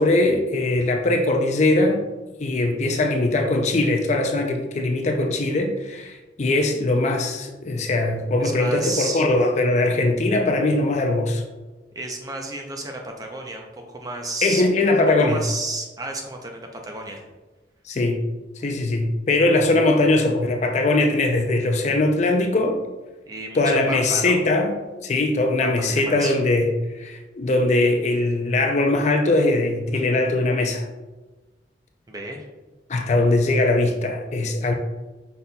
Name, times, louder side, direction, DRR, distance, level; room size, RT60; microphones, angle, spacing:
voice 1, 0.0-2.0 2.4-11.4 14.4-15.4 17.9-18.2 18.6-22.8 23.5-30.9 32.9-34.7, left 2 dB, 40° left, 3 dB, 0.4 m, -21 dB
voice 2, 8.4-9.2 12.0-14.6 15.2-17.2 23.3-24.4 25.6-26.3 32.1-32.4, right 2 dB, 20° right, 2 dB, 0.5 m, -32 dB
5.3 x 4.1 x 2.2 m, 1.2 s
head